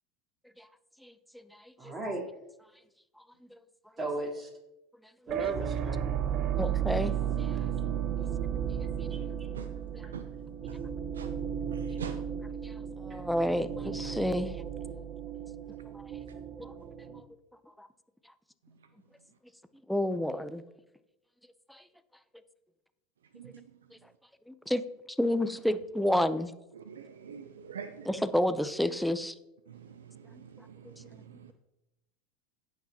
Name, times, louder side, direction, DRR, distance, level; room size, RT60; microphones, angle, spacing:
voice 1, 1.8-2.2 4.0-4.5 5.3-6.1 9.1-9.5, right 2 dB, 30° right, -2 dB, 3.8 m, -36 dB
sound 1, 5.3-17.2, right 9 dB, 50° right, 0.7 m, -34 dB
voice 2, 6.6-7.1 8.2-8.3 12.6-12.7 13.0-14.5 16.6-16.7 17.8-17.9 19.9-20.6 24.7-24.8 25.2-26.5 28.1-29.3 31.1-31.2, left 1 dB, ahead, 12 dB, 0.6 m, -29 dB
voice 3, 11.7-12.2 23.3-23.6 26.7-28.1 29.7-31.5, right 7 dB, 85° right, 10 dB, 0.4 m, -44 dB
17.0 x 5.9 x 2.9 m, 0.94 s
hypercardioid pair, 80°, 0 cm